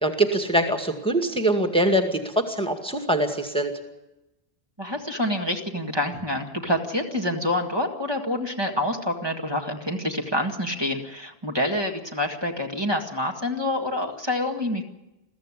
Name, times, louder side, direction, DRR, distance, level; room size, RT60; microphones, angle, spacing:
voice 1, 0.0-3.7, right 1 dB, 5° left, 5 dB, 2.0 m, -23 dB
voice 2, 4.8-14.8, left 1 dB, 25° right, 1 dB, 2.0 m, -27 dB
22.5 x 15.0 x 9.9 m, 0.97 s
omnidirectional pair, 1.0 m